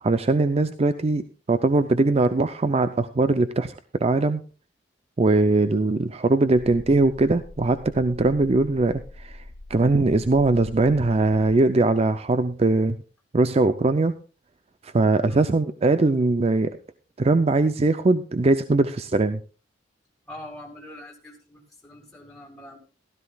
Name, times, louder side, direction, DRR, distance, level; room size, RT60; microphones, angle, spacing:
voice 1, 0.0-3.7 4.0-4.4 5.2-9.4 9.7-13.0 13.3-14.1 14.8-16.8 17.2-19.4, right 2 dB, 35° right, 11 dB, 0.5 m, -21 dB
sound 1, 6.5-11.7, left 1 dB, 30° left, 1.2 m, -43 dB
voice 2, 20.3-22.8, left 1 dB, 5° left, 0 dB, 2.2 m, -43 dB
16.0 x 13.0 x 2.3 m, 0.35 s
head